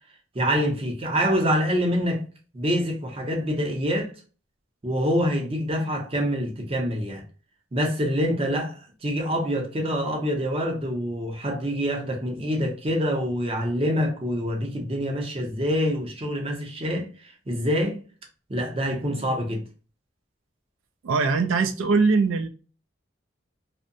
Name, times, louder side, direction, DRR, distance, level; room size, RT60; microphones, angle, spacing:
voice 1, 0.3-2.2 2.5-4.1 4.8-7.2 7.7-18.0 18.5-19.6, equal, 30° right, 0.6 m, -26 dB
voice 2, 21.0-22.5, right 4 dB, 90° right, 0.4 m, -21 dB
2.6 x 2.1 x 2.5 m
head